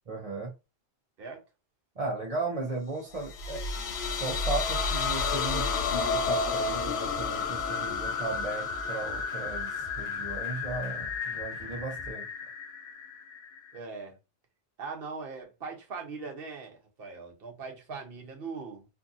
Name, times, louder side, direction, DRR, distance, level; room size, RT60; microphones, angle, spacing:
voice 1, 0.1-0.5 2.0-3.6 3.9-12.2, right 3 dB, 40° right, 0.7 m, -36 dB
sound 1, 3.2-13.8, left 5 dB, 85° left, 0.8 m, -32 dB
sound 2, 5.9-12.1, right 1 dB, 10° left, 1.3 m, -47 dB
voice 2, 13.7-14.2 14.8-18.9, right 4 dB, 65° right, 1.0 m, -40 dB
2.6 x 2.5 x 2.5 m
omnidirectional pair, 1.0 m